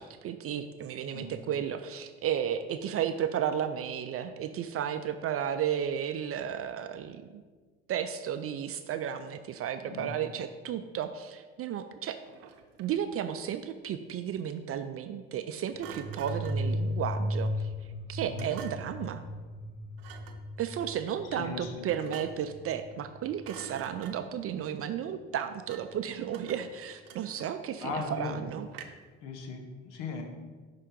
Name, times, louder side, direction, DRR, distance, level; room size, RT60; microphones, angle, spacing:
voice 1, 0.0-7.4 7.9-12.2 12.8-17.7 18.1-19.2 20.6-28.7, right 9 dB, 45° right, 9 dB, 0.4 m, -33 dB
Thump thud, 12.2-13.1 15.8-16.7 18.4-19.0 20.0-20.5 21.9-22.5 22.9-23.1 23.4-24.4 25.7-26.0 26.3-27.7 28.7-29.2, right 7 dB, 75° right, 0.7 m, -47 dB
sound 1, 15.7-24.1, equal, 20° left, 0.9 m, -36 dB
voice 2, 21.3-21.9 27.8-28.4 29.2-30.2, left 4 dB, 85° left, 4 dB, 1.0 m, -38 dB
5.5 x 3.7 x 5.2 m, 1.4 s
supercardioid pair, 80°, 34 cm